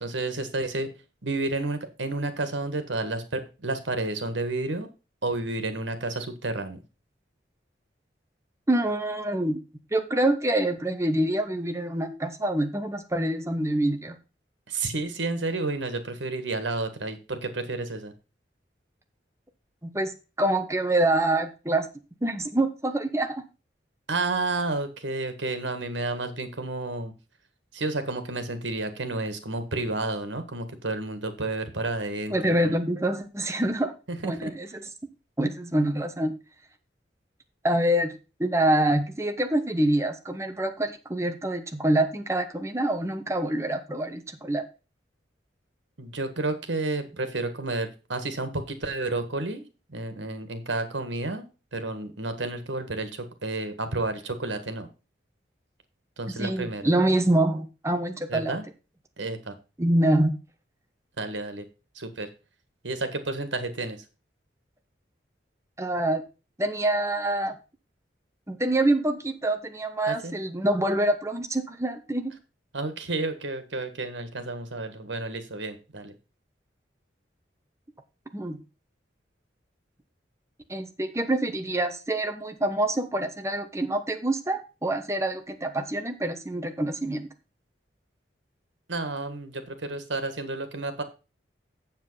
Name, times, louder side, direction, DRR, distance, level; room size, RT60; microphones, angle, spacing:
voice 1, 0.0-0.9 1.2-4.9 5.2-6.8 14.7-18.1 24.1-27.1 27.7-32.7 34.1-34.5 46.0-49.6 49.9-51.4 51.7-54.9 56.2-56.8 58.3-58.6 59.2-59.5 61.2-61.7 61.9-62.3 62.8-64.0 70.1-70.3 72.7-76.1 88.9-91.0, right 2 dB, 85° right, 9 dB, 1.6 m, -31 dB
voice 2, 8.7-9.6 9.9-14.2 19.8-21.9 22.2-23.4 32.3-33.9 34.2-34.7 35.4-36.3 37.6-38.1 38.4-44.6 56.4-58.6 59.8-60.3 65.8-66.2 66.6-67.6 68.5-72.3 78.3-78.6 80.7-87.3, right 1 dB, 15° right, 7 dB, 1.1 m, -26 dB
7.5 x 7.4 x 5.6 m, 0.31 s
head